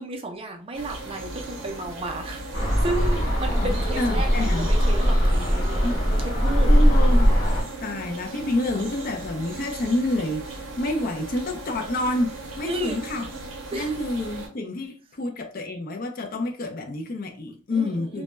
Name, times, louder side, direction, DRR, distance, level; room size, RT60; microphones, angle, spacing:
voice 1, 0.0-2.4 2.8-5.7 6.2-6.8 12.7-13.1 13.7-14.0 17.7-18.2, right 2 dB, 25° right, 0.4 m, -33 dB
sound 1, 0.7-14.5, right 2 dB, 65° right, 0.7 m, -37 dB
sound 2, 2.5-7.6, equal, 20° left, 0.8 m, -20 dB
voice 2, 3.6-4.7 5.8-6.0 6.6-7.3 7.8-13.3 13.7-18.2, left 2 dB, 45° left, 0.4 m, -28 dB
2.1 x 2.0 x 3.1 m
head